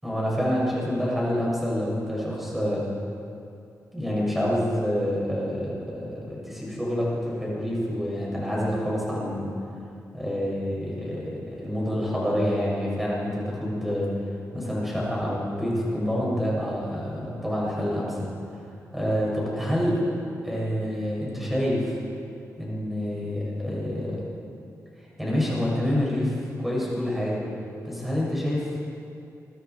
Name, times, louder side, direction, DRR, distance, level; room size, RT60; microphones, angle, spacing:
voice 1, 0.0-2.9 3.9-9.6 10.1-14.1 14.5-18.3 18.9-20.0 20.4-22.0 22.6-24.2 25.2-27.4 27.8-28.7, equal, 5° right, -5 dB, 6.9 m, -27 dB
27.5 x 23.5 x 4.7 m, 2.6 s
wide cardioid pair, 170°, 6 cm